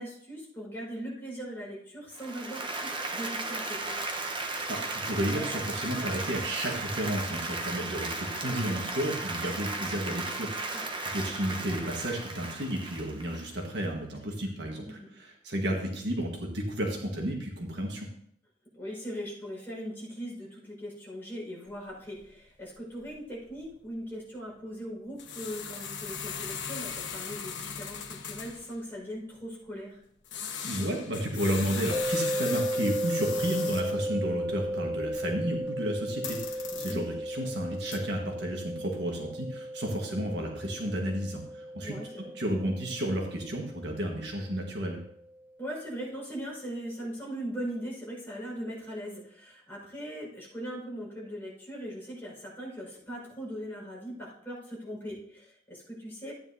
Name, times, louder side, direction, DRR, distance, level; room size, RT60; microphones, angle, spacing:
voice 1, 0.0-3.9 8.1-8.5 10.7-10.8 14.8-15.1 18.7-30.0 34.5-34.6 36.7-37.0 41.7-42.3 45.6-56.3, equal, 10° left, -5 dB, 5.2 m, -40 dB
Applause, 2.1-13.8, right 2 dB, 25° right, 1.0 m, -35 dB
voice 2, 4.7-18.1 30.6-42.0 42.3-45.0, right 1 dB, 65° right, 1 dB, 1.6 m, -32 dB
sound 1, 21.7-21.8 22.0-22.3 22.6-22.8 23.1-23.2 23.5-23.7 25.1-28.8 30.2-34.0 34.4-35.8 36.1-37.2 37.7-38.0, left 6 dB, 80° left, 1.2 m, -39 dB
sound 2, 31.9-45.0, equal, 10° right, 3.3 m, -35 dB
14.0 x 9.5 x 2.8 m, 0.67 s
head